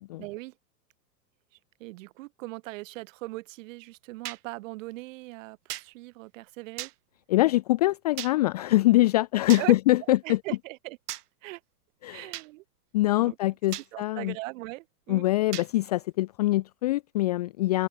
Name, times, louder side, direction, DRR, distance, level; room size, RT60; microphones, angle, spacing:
voice 1, 0.2-0.5 1.8-6.9 9.6-9.7 10.1-11.0 11.4-11.6 12.1-12.6 13.2-13.4 13.9-15.3, right 21 dB, 50° right, 5.8 m, -39 dB
sound 1, 4.2-4.4 5.7-5.9 6.8-6.9 8.2-8.3 9.5-9.7 11.1-11.2 12.3-12.5 13.7-13.9 15.5-15.7, right 14 dB, 65° right, 1.9 m, -36 dB
voice 2, 7.3-10.4 12.0-12.3 12.9-14.3 15.1-17.9, left 17 dB, 25° left, 0.4 m, -24 dB
open air
hypercardioid pair, 145°, 49 cm